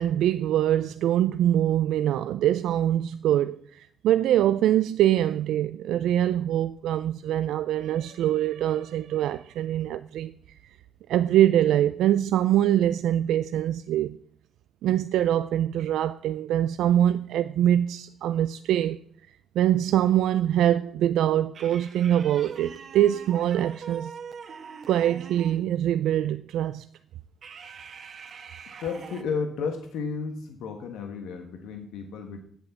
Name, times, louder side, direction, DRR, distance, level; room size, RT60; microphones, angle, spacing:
voice 1, 0.0-10.3 10.6-10.8 11.1-14.2 14.8-19.0 19.6-24.1 24.9-26.9, right 11 dB, 85° right, 0.4 m, -24 dB
sound 1, 21.5-25.7 27.4-29.2, right 6 dB, 50° right, 1.3 m, -43 dB
voice 2, 28.8-32.4, left 5 dB, 90° left, 1.4 m, -33 dB
8.5 x 7.9 x 8.0 m
cardioid pair, 115°, 0 cm